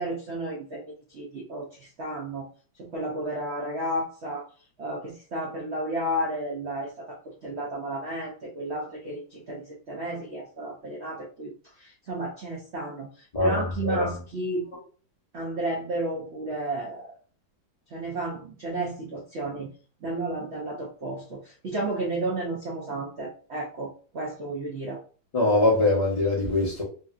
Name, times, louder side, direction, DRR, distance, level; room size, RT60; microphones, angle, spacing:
voice 1, 0.0-2.5 2.8-4.5 4.8-11.5 11.8-14.7 15.3-17.2 17.9-19.7 20.0-25.0, right 1 dB, 80° right, 0.6 m, -32 dB
voice 2, 13.3-14.1 25.3-26.8, left 2 dB, 55° left, 0.4 m, -23 dB
3.1 x 2.7 x 2.4 m
omnidirectional pair, 2.1 m